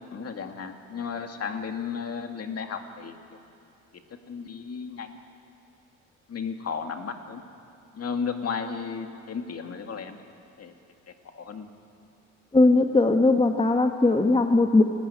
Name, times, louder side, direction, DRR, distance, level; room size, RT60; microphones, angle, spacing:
voice 1, 0.1-3.4 4.1-5.2 6.3-7.4 7.9-10.2 10.6-10.7 11.1-11.7, left 6 dB, 50° left, 5 dB, 2.2 m, -34 dB
voice 2, 12.5-14.8, left 2 dB, 15° left, 5 dB, 1.3 m, -19 dB
27.5 x 12.0 x 10.0 m, 2.7 s
cardioid pair, 80°, 32 cm